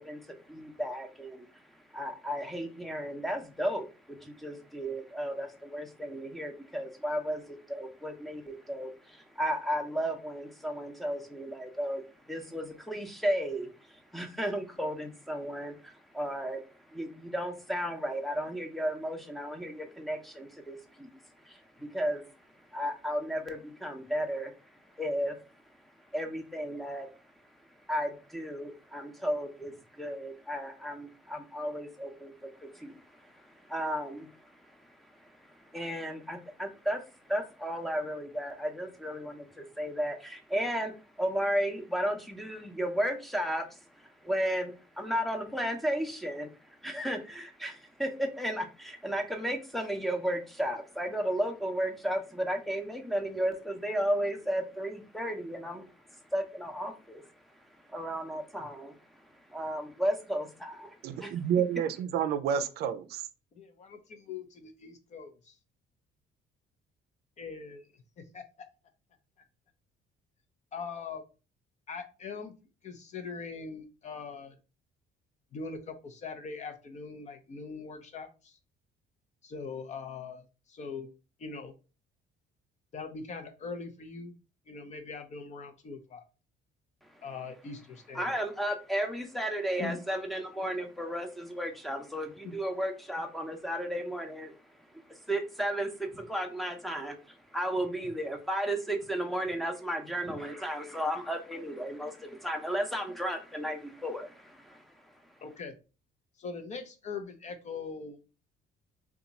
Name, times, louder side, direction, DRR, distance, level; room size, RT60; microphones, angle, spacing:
voice 1, 0.0-1.6 1.9-16.6 16.9-21.1 21.4-22.3 22.7-24.5 25.0-25.4 26.1-27.1 27.9-55.8 56.1-57.2 57.9-58.9 59.5-61.3 88.1-94.5 94.9-104.8, equal, ahead, 0.7 m, -34 dB
voice 2, 61.0-63.2, right 8 dB, 70° right, 0.4 m, -29 dB
voice 3, 63.5-65.6 67.4-68.4 70.7-71.2 71.9-72.5 72.8-74.5 75.5-78.6 79.4-81.1 81.4-81.7 82.9-84.3 84.7-86.2 87.2-88.2 89.8-90.0 92.4-92.5 105.4-105.7 106.4-108.2, left 5 dB, 45° left, 0.7 m, -41 dB
2.8 x 2.3 x 3.9 m
cardioid pair, 110°, 17 cm